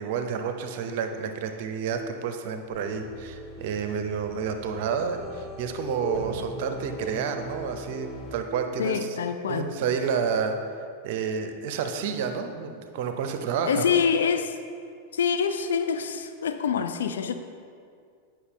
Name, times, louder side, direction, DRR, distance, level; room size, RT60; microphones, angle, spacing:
voice 1, 0.0-9.2 9.5-10.6 11.0-14.0, right 6 dB, 50° right, 7 dB, 0.6 m, -30 dB
sound 1, 2.7-8.3, left 1 dB, 20° left, 1.1 m, -39 dB
voice 2, 8.8-9.7 13.7-14.6 15.1-17.4, left 7 dB, 65° left, 9 dB, 0.3 m, -25 dB
9.5 x 5.9 x 3.0 m, 2.3 s
figure-of-eight pair, 90°, 0 cm